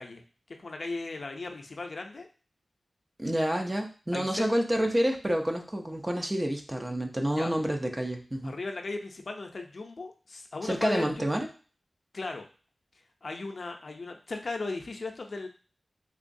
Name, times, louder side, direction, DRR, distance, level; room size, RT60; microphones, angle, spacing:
voice 1, 0.0-2.3 4.1-4.5 7.4-7.5 8.4-11.3 12.1-12.5 13.2-15.5, left 3 dB, 65° left, 3 dB, 0.5 m, -37 dB
voice 2, 3.2-8.5 10.6-11.5, equal, 25° right, 3 dB, 0.5 m, -28 dB
3.5 x 3.0 x 2.6 m, 0.38 s
wide cardioid pair, 65°, 0 cm